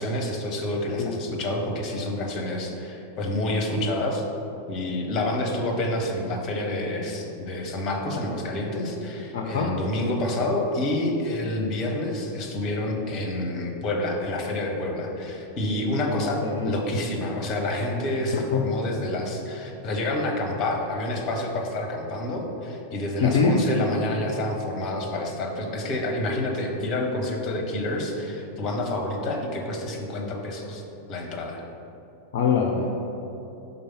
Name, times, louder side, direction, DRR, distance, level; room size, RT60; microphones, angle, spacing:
voice 1, 0.0-4.2 4.7-16.4 16.6-30.8 31.1-31.6, left 1 dB, 35° left, 1 dB, 1.1 m, -28 dB
voice 2, 9.3-9.7 16.4-16.7 18.5-18.6 23.2-23.6 32.3-32.8, left 5 dB, 55° left, 0 dB, 0.5 m, -23 dB
5.3 x 4.0 x 5.7 m, 2.9 s
figure-of-eight pair, 90°, 0 cm